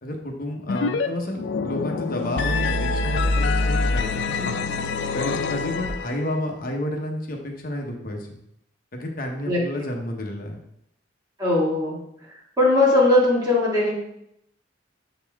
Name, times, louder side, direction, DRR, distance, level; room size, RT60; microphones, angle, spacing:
voice 1, 0.0-4.6 5.1-8.4 8.9-10.6, left 1 dB, 45° left, 2 dB, 0.9 m, -31 dB
sound 1, 0.7-1.1 1.3-6.3, left 3 dB, 65° left, 0.4 m, -25 dB
voice 2, 11.4-12.0 12.6-13.9, left 2 dB, 20° right, -6 dB, 1.9 m, -19 dB
7.2 x 4.1 x 3.4 m, 0.77 s
head